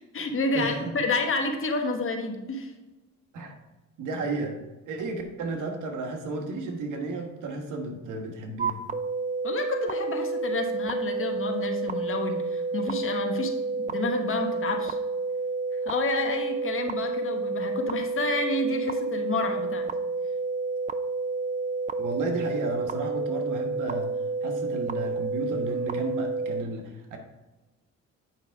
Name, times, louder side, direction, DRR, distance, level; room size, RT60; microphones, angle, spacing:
voice 1, 0.0-2.7 9.4-15.0 15.8-19.9, left 3 dB, 45° left, 4 dB, 1.3 m, -29 dB
voice 2, 0.5-0.9 3.3-3.5 4.0-4.6 4.8-8.8 22.0-24.1 24.4-27.2, right 2 dB, 85° right, 3 dB, 1.5 m, -33 dB
sound 1, 8.6-26.6, right 3 dB, 25° right, 0.5 m, -30 dB
9.1 x 5.5 x 3.5 m, 1.1 s
cardioid pair, 90°, 30 cm